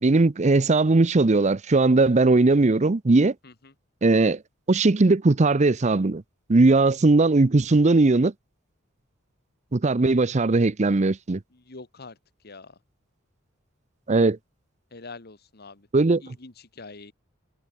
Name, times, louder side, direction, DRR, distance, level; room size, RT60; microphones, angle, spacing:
voice 1, 0.0-3.3 4.0-4.4 4.7-6.2 6.5-8.3 9.7-11.4 14.1-14.4 15.9-16.2, right 3 dB, 35° right, 0.6 m, -19 dB
voice 2, 3.4-3.7 11.5-12.2 12.4-12.8 14.9-15.9 16.2-17.1, left 3 dB, 50° left, 1.7 m, -44 dB
head